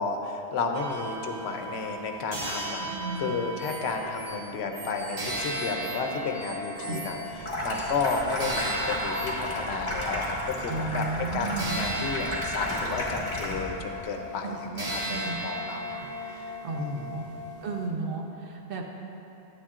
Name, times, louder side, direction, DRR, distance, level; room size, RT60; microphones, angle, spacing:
voice 1, 0.0-2.8 3.2-15.9 16.2-17.2, left 4 dB, 75° left, 4 dB, 0.9 m, -32 dB
sound 1, 0.7-4.5 5.2-17.9, equal, 40° right, 1.3 m, -36 dB
voice 2, 2.8-3.3 6.8-7.0 10.7-11.8 14.4-15.4 15.9-16.1 16.6-17.2 17.6-18.8, right 4 dB, 60° right, 0 dB, 0.9 m, -34 dB
sound 2, 3.6-9.5, right 2 dB, 20° right, 1.4 m, -43 dB
Water tap faucet / Sink (filling or washing), 7.3-13.8, equal, 25° left, 1.3 m, -33 dB
9.9 x 9.4 x 2.5 m, 2.9 s
omnidirectional pair, 1.1 m